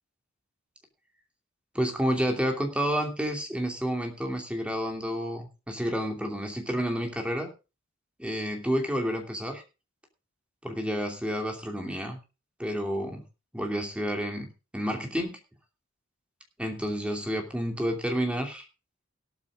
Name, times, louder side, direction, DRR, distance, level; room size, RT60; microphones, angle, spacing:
voice 1, 1.7-7.5 8.2-9.6 10.6-12.2 12.6-13.2 13.5-14.5 14.7-15.4 16.6-18.6, equal, 5° right, 3 dB, 2.8 m, -30 dB
17.5 x 13.0 x 2.4 m, 0.30 s
head